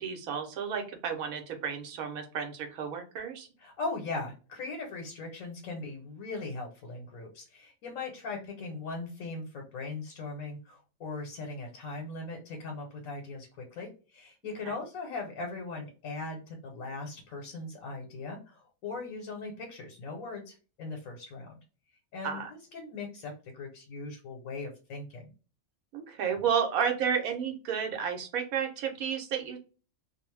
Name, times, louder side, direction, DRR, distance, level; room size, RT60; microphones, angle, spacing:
voice 1, 0.0-3.5 14.6-14.7 22.2-22.5 25.9-29.6, right 7 dB, 85° right, 4 dB, 1.1 m, -32 dB
voice 2, 3.6-21.6 22.1-25.3, left 3 dB, 80° left, 1 dB, 1.1 m, -39 dB
2.6 x 2.0 x 3.1 m, 0.35 s
omnidirectional pair, 1.4 m